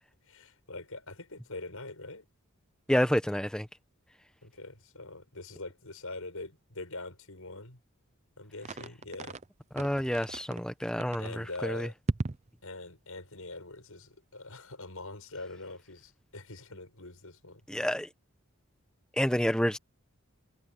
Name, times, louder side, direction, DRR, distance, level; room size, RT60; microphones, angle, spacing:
voice 1, 0.3-2.3 4.4-7.8 8.4-9.4 11.2-11.9 12.6-17.6, left 2 dB, 75° left, 6.3 m, -43 dB
voice 2, 2.9-3.7 9.7-11.9 17.7-18.1 19.2-19.8, equal, 5° left, 1.0 m, -29 dB
sound 1, 8.6-9.5 9.8-10.6 11.0-11.4 12.1-12.5, right 2 dB, 30° right, 0.6 m, -35 dB
head